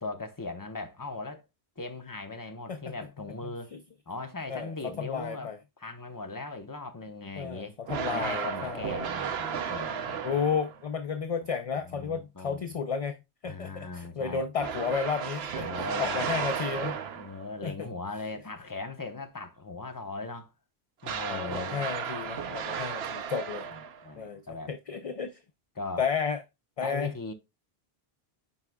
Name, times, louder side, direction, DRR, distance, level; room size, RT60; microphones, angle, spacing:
voice 1, 0.0-1.4 1.8-3.7 4.1-5.5 5.8-7.8 8.1-10.2 11.7-12.7 13.4-14.4 15.5-16.3 17.2-20.5 21.0-21.9 24.0-24.7 25.7-26.1 26.8-27.3, left 3 dB, 20° left, 0.8 m, -39 dB
voice 2, 4.5-5.6 7.4-9.0 10.2-13.2 13.4-15.7 16.0-17.0 17.6-17.9 21.3-23.7 24.2-24.4 24.7-25.4 26.0-26.4 26.8-27.1, left 6 dB, 45° left, 0.5 m, -32 dB
sound 1, 7.9-10.8 14.6-17.5 21.0-24.1, right 7 dB, 75° right, 1.0 m, -34 dB
9.6 x 4.8 x 2.3 m
omnidirectional pair, 1.0 m